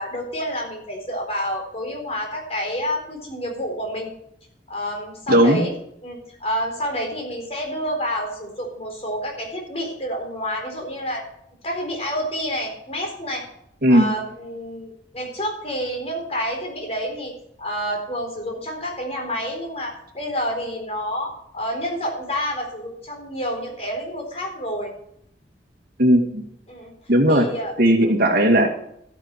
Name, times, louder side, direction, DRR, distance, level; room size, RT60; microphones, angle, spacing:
voice 1, 0.0-4.1 4.7-5.7 6.0-11.2 11.6-13.4 13.9-17.3 17.6-24.9 26.7-26.9 27.3-27.7 28.0-28.1, equal, 35° left, 1 dB, 4.2 m, -29 dB
voice 2, 5.3-5.6 13.8-14.1 26.0-26.4 27.1-27.5 27.8-28.7, equal, 55° right, 2 dB, 2.3 m, -16 dB
14.5 x 8.8 x 4.6 m, 0.72 s
head